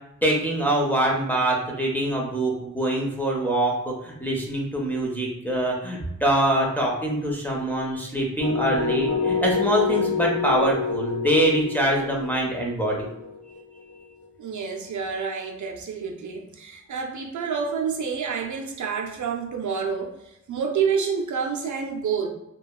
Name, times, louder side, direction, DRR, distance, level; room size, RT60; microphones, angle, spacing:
voice 1, 0.2-13.1 13.8-13.9, right 1 dB, 5° left, -3 dB, 0.5 m, -24 dB
sound 1, 8.4-14.2, left 5 dB, 35° left, 1.4 m, -27 dB
voice 2, 14.4-22.3, right 6 dB, 75° right, 2 dB, 0.4 m, -28 dB
2.8 x 2.2 x 2.2 m, 0.85 s
wide cardioid pair, 130°, 30 cm